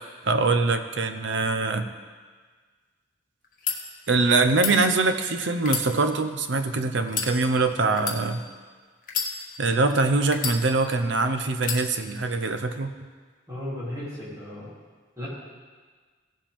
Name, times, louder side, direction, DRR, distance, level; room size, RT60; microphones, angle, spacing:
voice 1, 0.2-1.9 4.1-8.4 9.6-12.9, right 3 dB, 90° right, 8 dB, 0.8 m, -23 dB
sound 1, 3.4-3.8 4.5-4.8 5.6-6.5 7.1-7.3 8.0-8.2 9.0-9.7 10.3-11.0 11.6-11.8, left 6 dB, 45° left, 1.1 m, -30 dB
voice 2, 13.5-14.7 15.2-15.3, left 1 dB, 20° right, -9 dB, 3.2 m, -35 dB
16.5 x 7.6 x 3.6 m, 1.5 s
head